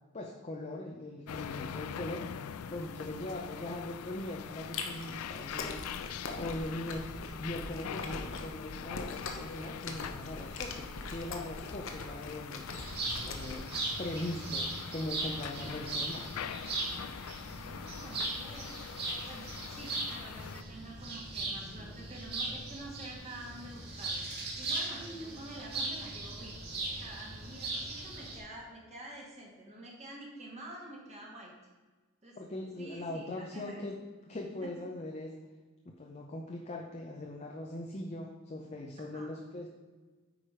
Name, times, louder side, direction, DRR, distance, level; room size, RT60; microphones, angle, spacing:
voice 1, 0.1-2.3 2.7-5.9 6.4-12.7 13.2-13.7 14.0-16.3 32.4-34.0 34.3-35.4 35.9-39.7, left 1 dB, 30° left, 1 dB, 0.6 m, -40 dB
sound 1, 1.3-20.6, left 8 dB, 85° left, 0.4 m, -43 dB
Chewing mastication, 4.6-13.8, left 3 dB, 60° left, 0.9 m, -42 dB
sound 2, 12.7-28.4, right 2 dB, 45° right, 1.9 m, -39 dB
voice 2, 17.5-18.7 19.2-26.6 27.0-31.5 32.2-32.4 32.8-33.8 34.6-34.7 39.0-39.3, right 1 dB, 30° right, -2 dB, 1.5 m, -48 dB
8.7 x 5.0 x 4.9 m, 1.3 s
head